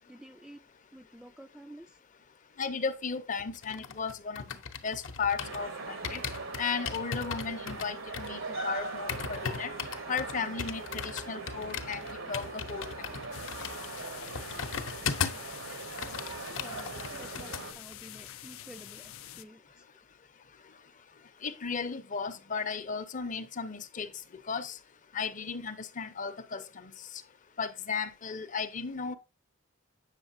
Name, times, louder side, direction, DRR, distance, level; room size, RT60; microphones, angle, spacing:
voice 1, 0.1-0.6 0.9-2.0 16.6-19.9, right 1 dB, ahead, 0.3 m, -51 dB
voice 2, 2.6-4.4 4.8-6.2 6.6-9.7 10.1-12.9 21.4-24.1 24.5-24.8 25.1-26.9 27.6-29.2, left 5 dB, 40° left, 0.7 m, -35 dB
sound 1, 3.4-5.7 6.0-15.5 15.8-17.6 17.9-18.2, left 6 dB, 70° left, 0.8 m, -38 dB
sound 2, 5.4-17.7, right 3 dB, 90° right, 1.5 m, -41 dB
sound 3, 13.3-19.4, left 12 dB, 85° left, 0.5 m, -47 dB
8.2 x 6.3 x 2.6 m
head